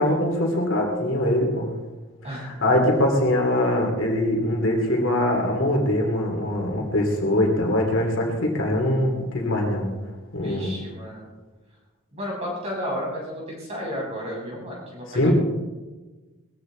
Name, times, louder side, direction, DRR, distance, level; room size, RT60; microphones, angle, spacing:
voice 1, 0.0-1.7 2.6-9.9 10.3-10.7 15.1-15.3, left 1 dB, 60° left, 1 dB, 3.0 m, -22 dB
voice 2, 2.2-2.6 10.4-11.3 12.1-15.3, equal, 30° right, -4 dB, 6.7 m, -32 dB
20.0 x 15.0 x 3.9 m, 1.2 s
head